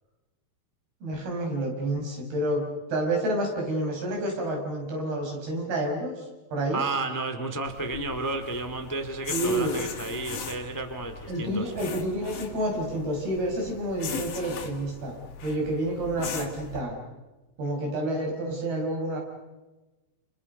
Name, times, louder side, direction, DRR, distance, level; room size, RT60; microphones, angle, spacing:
voice 1, 1.0-6.2 6.5-6.8 9.3-9.7 11.3-15.2 15.4-17.0 17.6-19.2, right 1 dB, 75° right, 0 dB, 7.7 m, -29 dB
voice 2, 6.7-11.7, right 3 dB, 25° left, 7 dB, 0.4 m, -32 dB
sound 1, 7.7-16.8, left 6 dB, 65° left, 3.9 m, -39 dB
29.5 x 29.5 x 5.4 m, 1.1 s
omnidirectional pair, 4.5 m